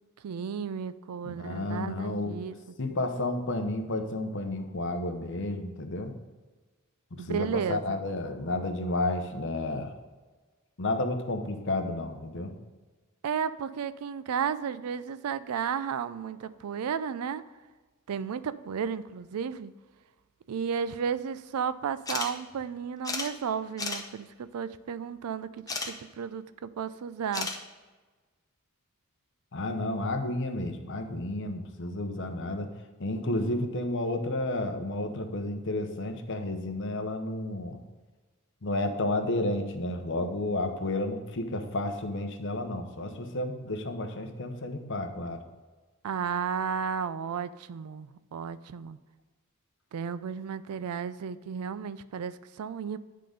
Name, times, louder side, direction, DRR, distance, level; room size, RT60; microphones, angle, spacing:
voice 1, 0.2-2.6 2.9-3.0 7.2-8.0 13.2-17.4 18.1-19.7 20.5-27.5 46.0-49.0 49.9-53.0, right 7 dB, 90° right, 14 dB, 0.4 m, -33 dB
voice 2, 1.2-2.4 2.8-6.1 7.1-9.9 10.8-12.5 29.5-32.7 33.0-37.8 38.6-45.4, left 2 dB, 55° left, 6 dB, 0.8 m, -31 dB
sound 1, 22.1-22.3 22.6-22.7 23.0-23.3 23.8-24.0 25.7-25.9 27.3-27.6, left 3 dB, 15° left, 0.7 m, -32 dB
10.0 x 3.8 x 5.1 m, 1.3 s
head